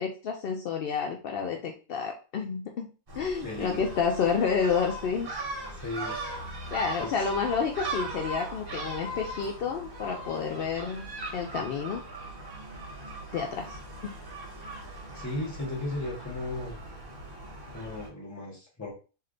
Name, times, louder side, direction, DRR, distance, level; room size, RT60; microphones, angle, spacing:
voice 1, 0.0-2.9 3.2-5.3 6.7-11.1 11.3-12.0 13.3-13.7, left 6 dB, 75° left, 3 dB, 0.5 m, -29 dB
Gull seagull, 3.1-18.1, right 2 dB, 45° right, 1.3 m, -39 dB
voice 2, 3.4-3.8 5.7-6.2 7.0-7.3 15.1-16.8 17.7-18.9, left 2 dB, 15° left, -3 dB, 1.1 m, -36 dB
3.2 x 2.7 x 3.8 m, 0.35 s
omnidirectional pair, 1.5 m